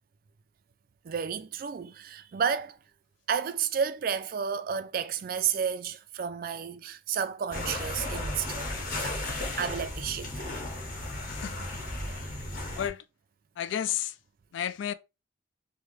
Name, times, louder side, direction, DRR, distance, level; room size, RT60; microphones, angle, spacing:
voice 1, 1.0-2.8 3.3-8.7 8.9-9.2 9.6-10.5, right 7 dB, 45° right, 0.3 m, -31 dB
sound 1, 7.5-12.9, left 1 dB, 45° left, 1.1 m, -35 dB
voice 2, 11.3-11.8 12.8-13.0 13.6-14.2 14.5-14.9, left 10 dB, 70° left, 0.3 m, -32 dB
3.2 x 2.7 x 3.1 m
head